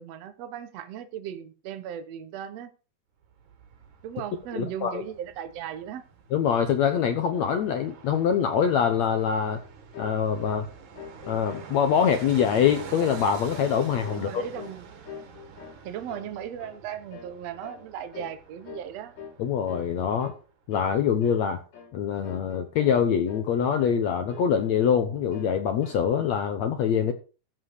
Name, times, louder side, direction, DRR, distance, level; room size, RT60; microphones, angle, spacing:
voice 1, 0.0-2.7 4.0-6.0 14.1-14.9 15.8-19.2, right 9 dB, 90° right, 1.4 m, -37 dB
Fixed-wing aircraft airplane, 3.2-20.2 20.5-20.6, right 6 dB, 55° right, 2.9 m, -46 dB
voice 2, 4.5-5.0 6.3-9.6 10.0-10.7 11.3-14.4 19.4-20.3 20.7-21.6 21.9-27.1, left 8 dB, 75° left, 1.6 m, -24 dB
sound 1, 9.9-10.2 10.4-10.7 11.0-12.2 12.5-12.7 13.0-13.3 13.5-13.8 14.0-14.8 15.1-15.8 16.1-16.3 16.6-16.8 17.1-17.3 17.6-17.8 18.1-18.4 18.7-18.9 19.2-19.4 19.7-19.9 20.2-20.4 20.7-21.0 21.2-21.4 21.7-21.9 22.2-23.0 23.3-24.0 24.3-25.0 25.3-26.1, left 7 dB, 50° left, 3.7 m, -44 dB
13.5 x 5.1 x 6.6 m
omnidirectional pair, 4.5 m